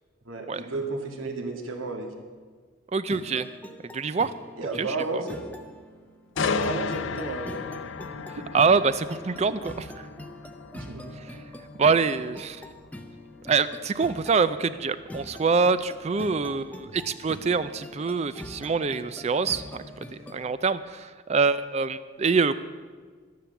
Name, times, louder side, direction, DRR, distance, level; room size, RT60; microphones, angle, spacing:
voice 1, 0.3-2.1 4.6-5.4 6.4-7.7 8.1-8.2 10.7-11.0, right 3 dB, 90° right, 2 dB, 2.2 m, -33 dB
voice 2, 2.9-3.5 3.9-4.3 4.8-5.2 8.5-10.1 11.2-11.4 11.8-12.6 13.5-19.8 20.3-22.6, right 5 dB, 35° right, 13 dB, 0.4 m, -25 dB
sound 1, 3.1-20.5, left 1 dB, 10° left, 0.7 m, -44 dB
sound 2, 6.4-20.2 20.6-20.9, left 5 dB, 70° left, 0.6 m, -36 dB
12.5 x 10.5 x 7.0 m, 1.5 s
head